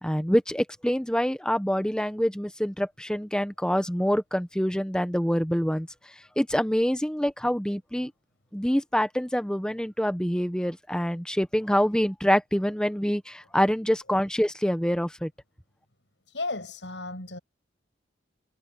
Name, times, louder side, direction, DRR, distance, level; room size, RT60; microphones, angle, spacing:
voice 1, 0.0-5.9 6.4-8.1 8.5-15.3, equal, 5° left, 1.1 m, -26 dB
voice 2, 16.3-17.4, left 2 dB, 85° left, 7.2 m, -34 dB
head